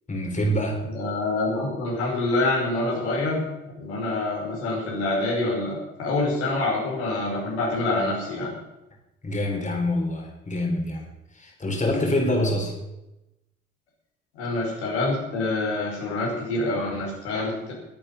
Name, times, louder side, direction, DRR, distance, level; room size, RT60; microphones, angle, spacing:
voice 1, 0.1-0.8 9.2-11.1 11.3-12.8, left 1 dB, 25° left, 1 dB, 4.1 m, -25 dB
voice 2, 0.8-3.5 3.8-8.5 14.3-17.7, left 2 dB, 80° left, -4 dB, 5.2 m, -26 dB
20.5 x 8.9 x 5.7 m, 0.94 s
figure-of-eight pair, 50°, 33 cm